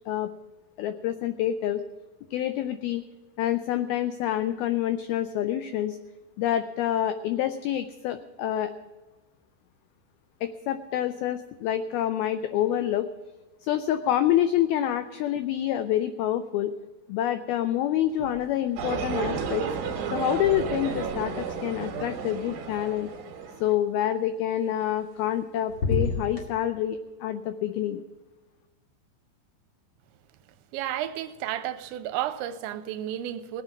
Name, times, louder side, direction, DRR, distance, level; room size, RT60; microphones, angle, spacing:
voice 1, 0.8-1.8 2.3-3.0 3.4-6.0 6.4-8.7 10.4-13.1 13.6-16.7 17.1-19.7 20.1-23.1 23.6-28.0, left 11 dB, 90° left, 2.1 m, -27 dB
sound 1, 18.1-18.8 19.1-23.2 24.8-25.4 25.7-26.5, left 4 dB, 40° left, 2.0 m, -35 dB
sound 2, 18.8-23.7, right 6 dB, 70° right, 3.7 m, -32 dB
voice 2, 30.7-33.6, right 12 dB, 90° right, 3.0 m, -32 dB
18.5 x 8.9 x 5.9 m
omnidirectional pair, 5.2 m